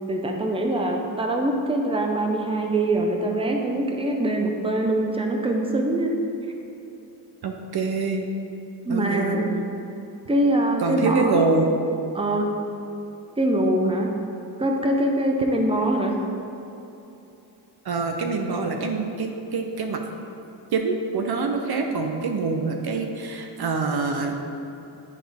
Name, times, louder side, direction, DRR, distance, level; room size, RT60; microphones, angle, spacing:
voice 1, 0.1-6.1 8.8-9.5 10.3-11.4 12.1-12.5 13.4-14.1 14.6-16.2, right 1 dB, 15° right, 2 dB, 0.8 m, -23 dB
voice 2, 7.4-8.2 8.9-9.4 10.8-11.7 17.8-20.0 20.7-24.4, right 4 dB, 60° right, 4 dB, 0.7 m, -25 dB
11.0 x 3.9 x 3.5 m, 2.9 s
cardioid pair, 75°, 42 cm